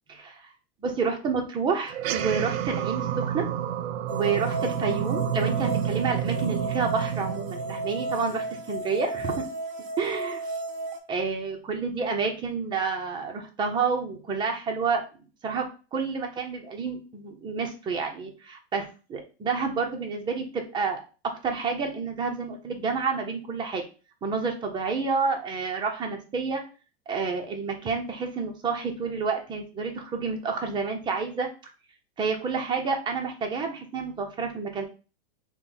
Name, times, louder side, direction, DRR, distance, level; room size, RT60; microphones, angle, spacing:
voice 1, 0.1-0.4 0.8-3.4 4.1-9.4 10.0-10.4 11.1-15.0 15.4-15.7 15.9-21.0 21.4-23.8 24.2-26.6 27.1-31.5 32.2-34.8, right 5 dB, 15° right, 2 dB, 0.6 m, -29 dB
sound 1, 1.9-8.6, right 10 dB, 70° right, 0.6 m, -30 dB
sound 2, 4.1-11.0, right 2 dB, 45° right, 1.1 m, -34 dB
4.4 x 2.1 x 3.7 m, 0.34 s
supercardioid pair, 150°, 32 cm